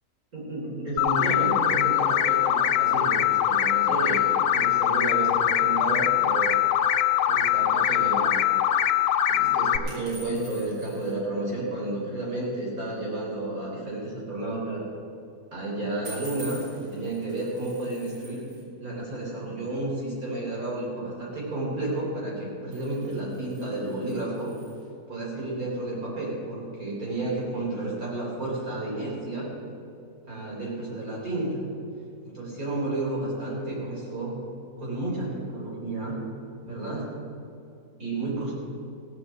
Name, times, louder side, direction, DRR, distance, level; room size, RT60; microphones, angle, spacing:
voice 1, 0.3-6.5 7.3-8.6 9.3-14.8 15.5-16.6 16.9-18.5 18.8-24.5 25.1-29.5 30.3-31.6 32.2-34.3 34.8-36.2 36.7-37.1 38.0-38.5, right 2 dB, 60° right, -5 dB, 4.5 m, -31 dB
sound 1, 1.0-9.8, left 11 dB, 75° left, 1.2 m, -22 dB
sound 2, 9.9-11.1 16.1-18.6 22.5-24.9, right 1 dB, 85° right, 4.8 m, -46 dB
16.0 x 6.9 x 8.0 m, 2.6 s
omnidirectional pair, 1.7 m